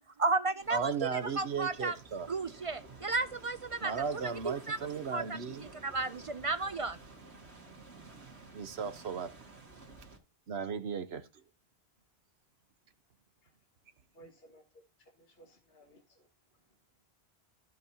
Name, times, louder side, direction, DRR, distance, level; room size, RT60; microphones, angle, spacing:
voice 1, 0.2-0.9 1.4-2.0 2.3-4.0 4.4-4.8 5.1-5.2 5.6-7.0, right 3 dB, 45° right, 0.4 m, -33 dB
sound 1, 0.6-10.2, right 3 dB, 90° right, 2.3 m, -52 dB
voice 2, 0.7-2.3 3.8-5.6 8.5-9.3 10.5-11.3, right 6 dB, 75° right, 1.2 m, -36 dB
voice 3, 14.1-16.3, right 1 dB, 65° left, 2.0 m, -59 dB
15.5 x 5.3 x 2.8 m
omnidirectional pair, 1.1 m